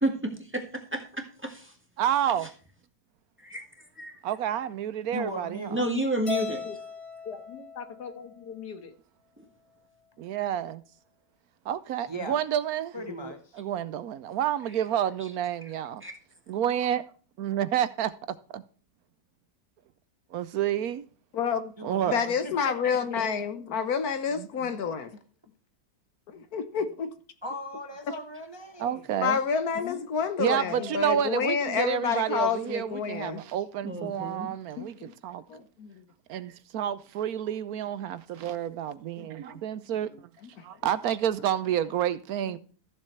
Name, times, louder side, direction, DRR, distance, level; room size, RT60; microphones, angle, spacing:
voice 1, 0.0-1.7 3.4-3.6 4.0-4.2 5.7-6.6 9.4-9.5 16.0-16.1 33.8-34.5, right 1 dB, 10° right, 1.6 m, -31 dB
voice 2, 2.0-2.5 4.2-5.8 10.2-10.8 11.7-12.9 13.6-16.0 16.5-17.1 17.4-18.1 18.5-18.6 20.3-21.0 21.8-22.2 24.4-24.7 28.8-29.4 30.4-34.9 35.2-35.4 36.3-40.1 40.6-42.6, right 10 dB, 75° right, 1.1 m, -29 dB
voice 3, 5.1-5.8 12.1-12.4 12.9-13.4 21.8-23.2 27.4-29.1 30.6-31.5, equal, 25° right, 0.7 m, -39 dB
Keyboard (musical), 6.3-8.6, left 5 dB, 40° left, 1.8 m, -37 dB
voice 4, 7.3-8.9 12.3-12.4 13.0-13.3 23.2-23.3 29.7-30.0 34.8-35.1 35.5-35.6, left 6 dB, 85° left, 2.0 m, -41 dB
voice 5, 21.3-21.7 22.1-25.1 26.3-27.1 29.2-33.4 35.5-36.0 39.2-39.6 42.4-42.6, left 6 dB, 70° left, 1.5 m, -29 dB
14.5 x 7.3 x 3.2 m
omnidirectional pair, 1.7 m